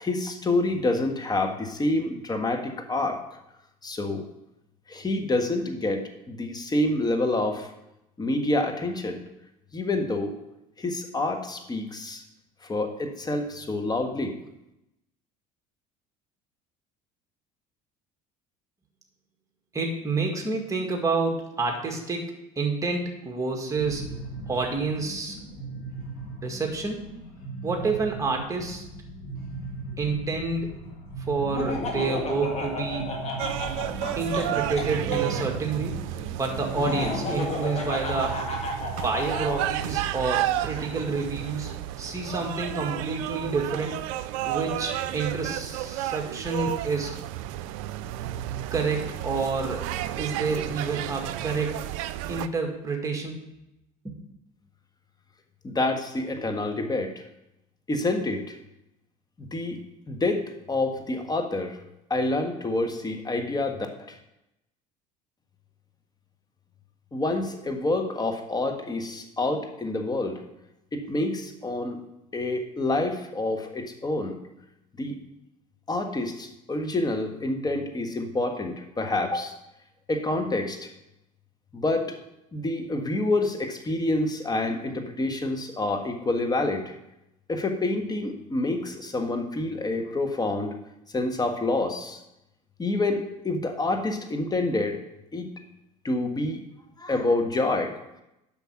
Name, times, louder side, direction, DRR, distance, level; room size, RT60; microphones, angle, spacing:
voice 1, 0.0-3.2 3.8-4.2 4.9-7.7 8.2-9.2 9.7-10.3 10.8-12.2 12.6-14.4 55.6-57.2 57.9-58.6 59.4-61.8 62.1-64.2 67.1-70.4 70.9-72.0 72.3-74.4 75.0-75.2 75.9-79.5 80.1-80.9 81.7-82.2 82.5-86.9 87.5-90.7 91.1-92.2 92.8-95.0 95.3-95.5 96.0-96.6 97.0-98.0, left 2 dB, 20° left, 4 dB, 1.5 m, -27 dB
voice 2, 19.7-24.1 24.5-25.4 26.4-27.0 27.6-28.8 30.0-30.7 31.3-33.1 34.2-36.0 36.4-38.4 39.0-44.0 44.4-47.1 48.7-49.9 50.2-51.9 52.3-53.4 54.0-54.2, right 4 dB, 20° right, 1 dB, 2.0 m, -29 dB
sound 1, 23.7-37.6, right 2 dB, 60° left, 2.4 m, -38 dB
Laughter, 31.5-35.2 36.7-39.7, left 2 dB, 40° left, 1.9 m, -32 dB
sound 2, 33.4-52.5, right 13 dB, 75° right, 0.4 m, -32 dB
8.1 x 5.9 x 5.9 m, 0.87 s
hypercardioid pair, 75°, 18 cm